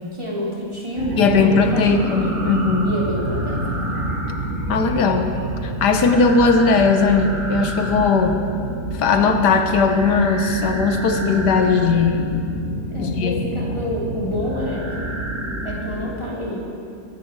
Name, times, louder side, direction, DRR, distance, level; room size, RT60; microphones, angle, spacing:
voice 1, 0.1-1.9 2.8-3.6 12.9-16.6, left 1 dB, 15° right, -5 dB, 3.2 m, -28 dB
sound 1, 1.0-16.1, right 1 dB, 80° right, 3.7 m, -28 dB
voice 2, 1.2-2.9 4.7-5.3 5.6-8.4 8.9-12.4 13.0-13.5, left 4 dB, 90° left, 6 dB, 1.6 m, -18 dB
21.5 x 11.0 x 4.7 m, 2.4 s
omnidirectional pair, 1.7 m